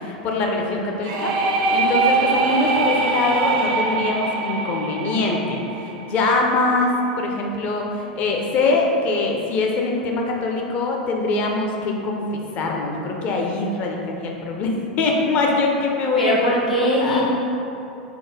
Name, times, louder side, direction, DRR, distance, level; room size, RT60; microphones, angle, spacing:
voice 1, 0.0-1.3 1.7-5.6 6.0-6.9 7.2-12.2 12.5-16.3 17.0-17.2, left 3 dB, 35° left, 0 dB, 0.4 m, -23 dB
sound 1, 1.0-6.7, right 3 dB, 50° right, 0.4 m, -23 dB
voice 2, 16.2-17.3, equal, 85° left, -6 dB, 0.7 m, -20 dB
4.8 x 2.1 x 3.1 m, 2.8 s
figure-of-eight pair, 85°, 4 cm